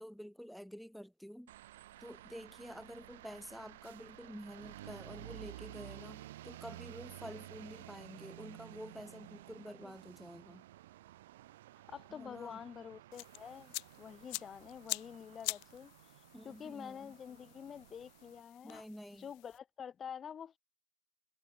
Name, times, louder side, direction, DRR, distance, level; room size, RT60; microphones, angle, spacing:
voice 1, 0.0-1.5 2.0-10.7 12.1-12.6 16.3-17.1 18.6-19.3, equal, ahead, 1.1 m, -49 dB
sound 1, 1.5-18.4, right 15 dB, 85° right, 1.1 m, -53 dB
voice 2, 11.9-15.9 16.4-18.8 19.2-20.6, left 8 dB, 25° left, 1.4 m, -48 dB
sound 2, 13.1-19.6, left 35 dB, 60° left, 2.1 m, -46 dB
supercardioid pair, 125°, 0 cm